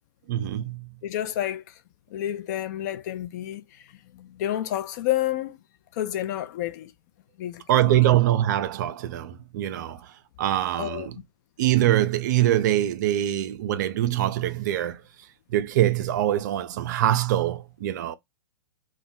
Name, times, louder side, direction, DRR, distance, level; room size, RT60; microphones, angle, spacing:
voice 1, 0.3-0.9 7.7-10.0 10.4-11.2 11.6-15.0 15.5-18.1, right 13 dB, 50° right, 0.4 m, -23 dB
voice 2, 1.0-1.6 2.1-3.6 4.1-5.6 6.0-6.9 7.4-7.9 10.8-11.1, left 12 dB, 45° left, 0.5 m, -29 dB
2.2 x 2.1 x 3.6 m
hypercardioid pair, 115°, 13 cm